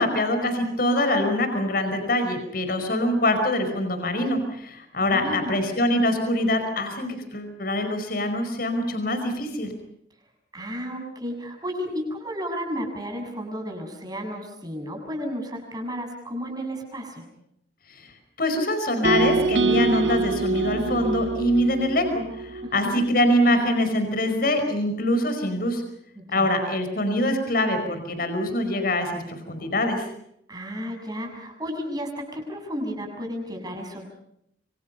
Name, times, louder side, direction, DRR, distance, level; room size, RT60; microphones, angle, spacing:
voice 1, 0.0-9.7 17.9-18.1 18.4-25.8 26.3-30.1, left 1 dB, 55° left, 7 dB, 5.1 m, -24 dB
voice 2, 5.0-5.6 10.5-17.2 22.6-23.1 26.2-26.6 30.5-34.0, equal, 25° right, 3 dB, 7.0 m, -33 dB
sound 1, 19.0-23.2, right 3 dB, 85° right, 1.6 m, -25 dB
27.0 x 25.5 x 5.7 m, 0.75 s
head